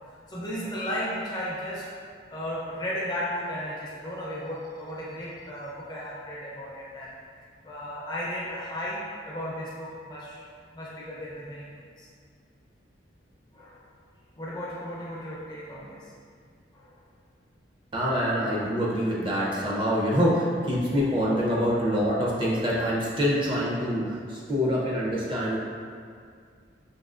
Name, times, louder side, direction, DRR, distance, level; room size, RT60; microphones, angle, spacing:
voice 1, 0.3-1.9 2.3-7.1 7.6-10.4 10.7-11.7 12.0-12.1 13.5-13.8 14.4-16.0 16.7-16.9 20.0-20.2, equal, 20° left, -6 dB, 0.6 m, -35 dB
voice 2, 17.9-25.6, equal, 25° right, -5 dB, 0.6 m, -25 dB
5.3 x 2.8 x 2.4 m, 2.2 s
head